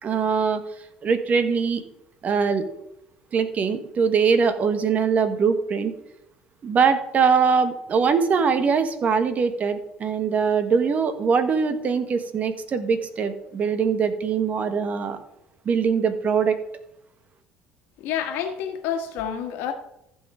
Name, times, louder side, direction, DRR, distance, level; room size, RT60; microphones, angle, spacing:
voice 1, 0.0-0.6 1.0-1.8 2.2-2.7 3.3-5.9 6.6-15.2 15.6-16.6, right 6 dB, 40° right, 9 dB, 1.5 m, -22 dB
voice 2, 18.0-19.7, left 8 dB, 75° left, 6 dB, 1.7 m, -28 dB
14.5 x 5.8 x 5.0 m, 0.82 s
supercardioid pair, 90°, 4 cm